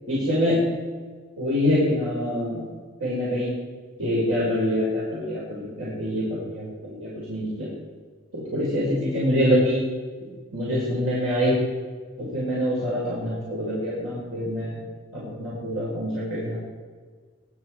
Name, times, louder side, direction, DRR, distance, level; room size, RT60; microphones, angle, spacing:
voice 1, 0.1-0.6 1.4-2.6 3.0-3.6 4.0-7.7 8.3-9.8 10.2-11.5 12.2-14.8 15.1-16.6, equal, 80° right, -8 dB, 5.8 m, -25 dB
22.5 x 11.5 x 4.9 m, 1.5 s
head